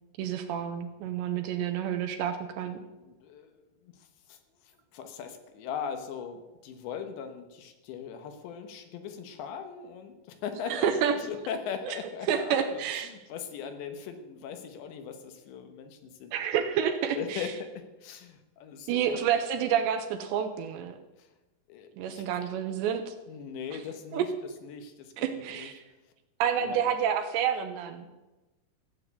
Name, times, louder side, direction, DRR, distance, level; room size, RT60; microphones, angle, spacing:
voice 1, 0.2-2.8 10.7-11.1 11.8-12.0 12.3-13.1 16.3-17.5 18.9-21.0 22.0-23.2 24.1-24.3 25.2-25.8 26.4-28.1, right 8 dB, 80° right, 7 dB, 2.9 m, -29 dB
voice 2, 3.0-3.6 3.8-4.4 4.9-16.4 17.1-19.2 21.2-21.3 21.7-22.3 23.3-24.3 24.6-25.7 26.6-26.8, left 7 dB, 75° left, 7 dB, 3.2 m, -40 dB
15.0 x 7.6 x 8.2 m, 1.1 s
omnidirectional pair, 5.5 m